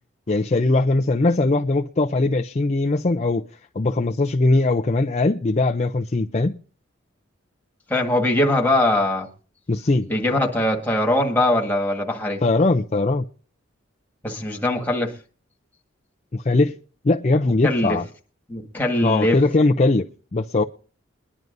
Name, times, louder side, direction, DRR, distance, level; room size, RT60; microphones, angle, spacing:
voice 1, 0.3-3.4 3.8-6.6 9.7-10.1 12.4-13.2 16.3-16.7 17.0-18.0 19.0-20.1 20.3-20.6, left 2 dB, 35° left, 0.5 m, -20 dB
voice 2, 7.9-9.3 10.1-12.4 14.2-15.2 17.6-18.0 18.5-19.4, left 1 dB, 10° left, 1.9 m, -21 dB
22.5 x 10.5 x 2.6 m
head